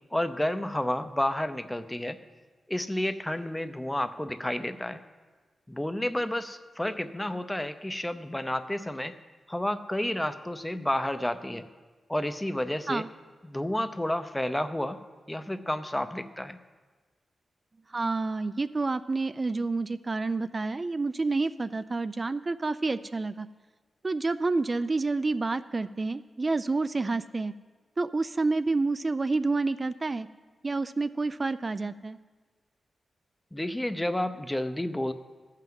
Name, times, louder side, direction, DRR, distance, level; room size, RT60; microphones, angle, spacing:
voice 1, 0.1-2.2 2.7-5.0 5.7-9.1 9.5-11.7 12.1-13.0 13.4-15.0 15.3-16.6 33.5-35.1, left 1 dB, 10° left, 10 dB, 0.6 m, -30 dB
voice 2, 17.9-23.5 24.0-27.5 28.0-30.3 30.6-32.2, right 3 dB, 35° right, 13 dB, 0.3 m, -29 dB
14.0 x 5.7 x 7.6 m, 1.4 s
wide cardioid pair, 90°, 0 cm